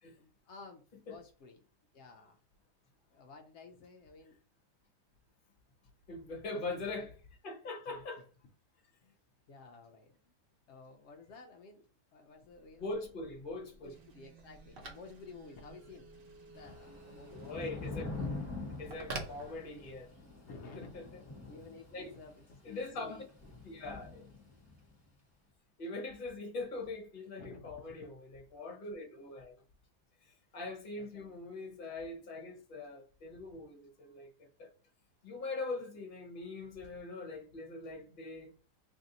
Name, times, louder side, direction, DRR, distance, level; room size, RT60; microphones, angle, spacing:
voice 1, 0.2-1.6 1.9-2.4 3.1-4.4 6.5-7.1 7.9-8.0 9.0-9.2 9.5-10.2 10.7-13.0 13.8-16.1 16.5-17.6 18.0-18.3 20.5-21.0 21.5-23.2 27.4-28.1 31.0-31.3, left 4 dB, 75° left, 0.6 m, -53 dB
voice 2, 6.1-7.1 7.4-8.2 12.8-13.9 17.3-18.1 18.8-20.1 20.8-21.2 21.9-22.1 22.6-23.2 23.6-24.3 25.8-29.6 30.2-34.7 35.2-38.5, left 3 dB, 40° left, 0.8 m, -42 dB
Telephone, 12.4-20.2, right 2 dB, 50° right, 0.7 m, -50 dB
sound 1, 13.9-17.6, right 7 dB, 65° right, 1.5 m, -62 dB
Thunder / Rain, 16.5-24.9, left 3 dB, 15° left, 0.8 m, -45 dB
3.3 x 2.6 x 3.8 m
omnidirectional pair, 1.7 m